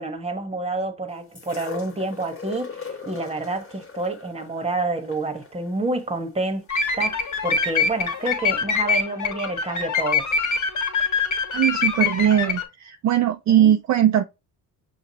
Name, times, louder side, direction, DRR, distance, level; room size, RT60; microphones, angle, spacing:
voice 1, 0.0-6.6 7.0-10.3 13.5-13.8, right 2 dB, 15° right, 1.2 m, -28 dB
sound 1, 1.3-7.4 8.3-8.4, left 5 dB, 35° left, 1.6 m, -40 dB
sound 2, 6.7-12.6, left 5 dB, 50° left, 1.6 m, -24 dB
voice 2, 11.5-14.2, right 10 dB, 50° right, 0.5 m, -20 dB
5.9 x 2.4 x 2.8 m
cardioid pair, 90°, 37 cm